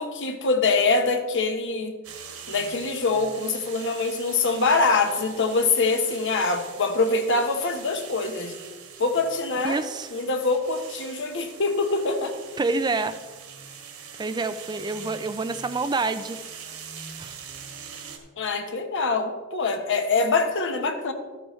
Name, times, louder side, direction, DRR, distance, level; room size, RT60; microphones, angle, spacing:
voice 1, 0.0-2.0 2.5-8.5 9.0-9.8 10.1-12.3 18.4-21.1, left 3 dB, 60° left, 6 dB, 1.1 m, -24 dB
sound 1, 2.0-18.2, right 7 dB, 70° right, 1.7 m, -43 dB
voice 2, 9.6-10.1 12.6-13.2 14.2-16.4 17.2-17.4, right 3 dB, 20° right, 11 dB, 0.3 m, -27 dB
13.0 x 9.1 x 3.2 m, 1.3 s
head